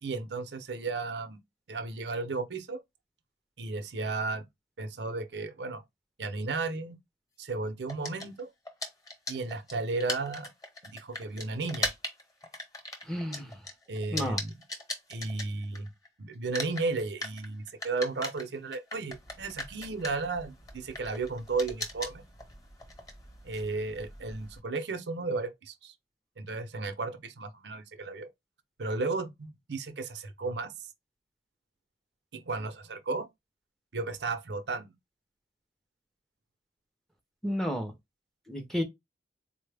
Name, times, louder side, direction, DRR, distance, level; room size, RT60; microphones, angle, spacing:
voice 1, 0.0-1.4 1.7-2.8 3.6-4.4 4.8-5.8 6.2-7.0 7.4-8.5 9.3-10.5 10.8-11.9 13.9-14.5 15.1-15.9 16.2-22.2 23.4-25.9 26.4-28.3 28.8-30.7 32.3-33.3 33.9-34.9, right 3 dB, 70° right, 0.6 m, -34 dB
sound 1, 7.9-16.1 16.3-24.6, left 2 dB, 20° left, 1.0 m, -39 dB
voice 2, 13.1-13.5 14.1-14.4 37.4-37.9 38.5-38.8, equal, ahead, 0.6 m, -31 dB
4.1 x 2.1 x 3.3 m
head